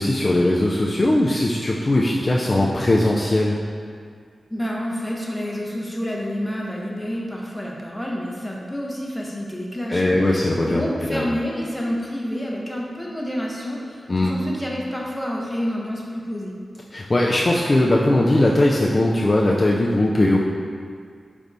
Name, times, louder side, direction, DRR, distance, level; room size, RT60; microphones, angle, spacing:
voice 1, 0.0-3.6 9.9-11.3 14.1-14.3 16.9-20.4, left 1 dB, 35° left, -3 dB, 0.3 m, -19 dB
voice 2, 4.5-10.2 10.7-16.5, equal, 5° left, -3 dB, 0.7 m, -28 dB
5.2 x 3.3 x 2.6 m, 2.1 s
wide cardioid pair, 95°, 0 cm